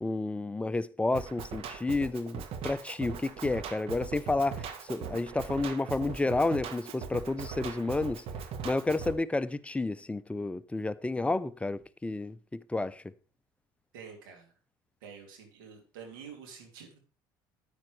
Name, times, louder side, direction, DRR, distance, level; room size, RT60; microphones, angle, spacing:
voice 1, 0.0-8.2 8.6-13.0, left 2 dB, 10° left, 0.6 m, -31 dB
Drum kit, 1.1-9.1, right 6 dB, 60° right, 1.3 m, -40 dB
voice 2, 13.9-14.5 15.0-17.0, right 6 dB, 80° right, 2.7 m, -48 dB
10.5 x 8.8 x 3.2 m
hypercardioid pair, 70°, 11 cm